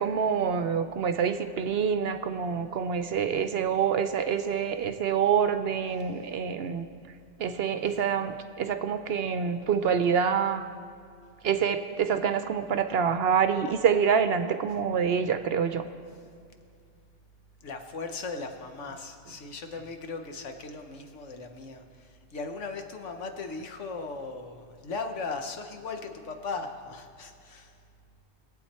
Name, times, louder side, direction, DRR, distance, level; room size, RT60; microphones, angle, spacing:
voice 1, 0.0-6.9 7.4-10.7 11.4-15.9, right 7 dB, 65° right, 10 dB, 0.7 m, -26 dB
voice 2, 17.6-27.7, left 4 dB, 75° left, 5 dB, 1.4 m, -38 dB
21.0 x 8.3 x 4.3 m, 2.3 s
omnidirectional pair, 1.3 m